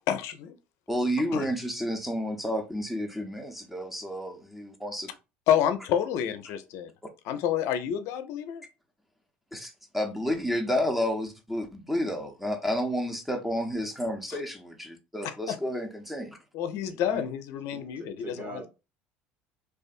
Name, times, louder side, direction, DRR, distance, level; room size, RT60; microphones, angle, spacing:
voice 1, 0.1-0.5 1.3-1.5 5.5-6.9 7.2-8.6 14.3-14.4 15.2-15.6 16.5-18.6, left 9 dB, 65° left, 0.4 m, -29 dB
voice 2, 0.9-5.1 9.5-16.4, equal, 5° right, 0.7 m, -30 dB
voice 3, 16.9-17.2 17.7-18.7, right 3 dB, 30° right, 1.0 m, -42 dB
2.5 x 2.3 x 2.4 m
hypercardioid pair, 75°, 5 cm